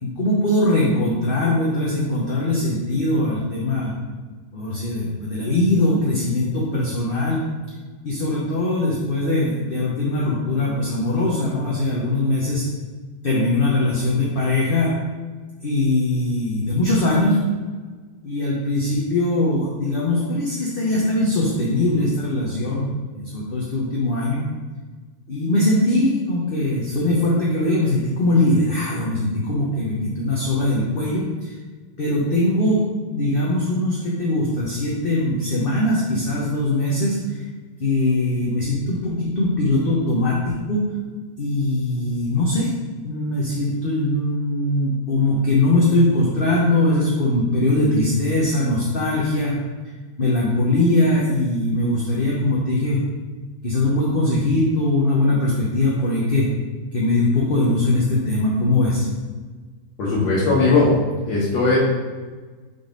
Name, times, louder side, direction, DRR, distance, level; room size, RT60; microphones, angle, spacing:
voice 1, 0.0-3.9 4.5-7.5 8.0-12.6 13.2-14.9 15.6-17.4 18.2-24.4 25.3-31.5 32.0-32.8 33.1-37.4 37.8-40.8 41.4-42.7 43.0-49.6 50.2-53.0 53.6-56.5 56.9-59.0, left 2 dB, 40° left, -5 dB, 0.9 m, -21 dB
voice 2, 60.0-60.9 61.2-61.8, left 3 dB, 70° left, -8 dB, 2.0 m, -18 dB
5.4 x 4.0 x 5.2 m, 1.4 s
omnidirectional pair, 2.1 m